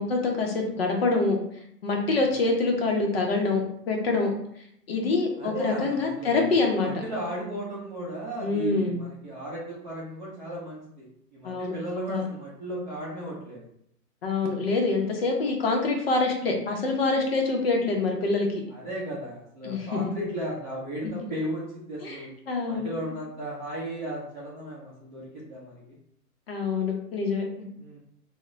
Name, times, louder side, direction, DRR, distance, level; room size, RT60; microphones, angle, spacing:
voice 1, 0.0-1.4 1.8-4.3 4.9-6.9 8.4-9.0 11.4-11.8 12.1-12.2 14.2-18.6 19.6-20.1 22.0-22.2 22.5-22.9 26.5-27.7, left 3 dB, 40° left, 1 dB, 0.5 m, -25 dB
voice 2, 5.4-6.4 6.8-11.1 11.3-13.7 18.7-22.3 22.7-26.0 27.8-28.0, right 1 dB, 30° right, -8 dB, 0.6 m, -35 dB
2.1 x 2.1 x 3.6 m, 0.71 s
hypercardioid pair, 160°, 49 cm